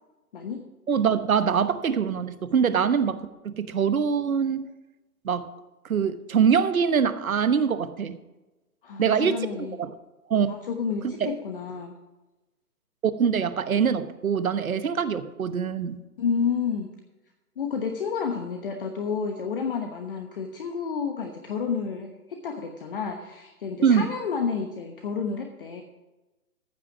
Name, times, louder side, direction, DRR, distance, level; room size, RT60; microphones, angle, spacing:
voice 1, 0.9-4.7 5.2-5.5 5.8-8.2 9.0-9.9 10.3-10.5 11.2-11.3 13.0-16.0 23.8-24.1, right 7 dB, 65° right, 11 dB, 1.2 m, -24 dB
voice 2, 8.8-9.7 10.5-11.9 16.2-16.9 17.6-25.8, left 6 dB, 35° left, 4 dB, 1.1 m, -30 dB
14.5 x 6.2 x 6.1 m, 1.1 s
figure-of-eight pair, 150°, 46 cm